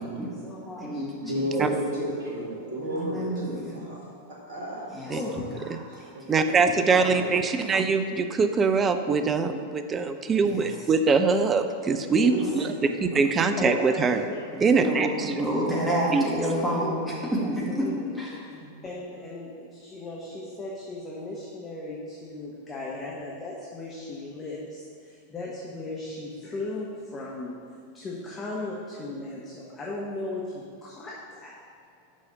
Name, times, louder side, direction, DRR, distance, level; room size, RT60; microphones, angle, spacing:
voice 1, 0.4-1.0 1.5-1.7 5.1-5.6 11.3-11.4 13.6-14.6 16.4-18.1 18.8-31.6, left 2 dB, 20° left, -4 dB, 1.2 m, -37 dB
voice 2, 1.2-4.0 4.3-4.8 5.9-6.6 6.9-7.3 12.1-13.5, right 1 dB, 60° right, -6 dB, 1.5 m, -33 dB
voice 3, 2.8-3.7 4.9-5.1 5.9-6.3 6.6-6.7 10.4-10.7 12.1-12.4 14.5-17.9 18.2-18.7, equal, 5° right, -5 dB, 2.0 m, -29 dB
voice 4, 6.3-12.7 13.0-14.2 14.6-15.3 16.1-16.2, right 4 dB, 20° right, 8 dB, 0.5 m, -23 dB
6.3 x 5.6 x 6.6 m, 2.3 s
figure-of-eight pair, 90°, 0 cm